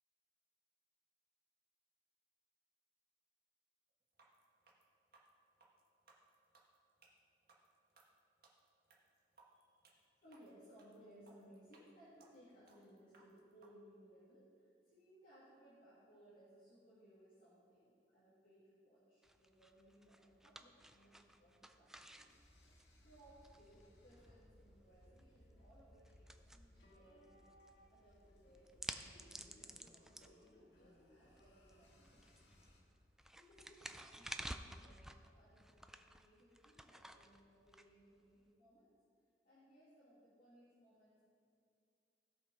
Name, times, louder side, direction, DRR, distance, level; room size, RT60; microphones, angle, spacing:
sound 1, 4.1-13.7, right 3 dB, 60° right, 1.5 m, -69 dB
voice 1, 9.4-22.4 22.8-27.5 27.9-32.6 33.4-38.9 39.4-41.2, equal, 55° left, -10 dB, 2.4 m, -65 dB
sound 2, 19.2-38.5, right 1 dB, 5° right, 0.4 m, -54 dB
sound 3, 22.3-32.8, equal, 70° left, 1.9 m, -66 dB
16.5 x 6.0 x 4.0 m, 2.4 s
head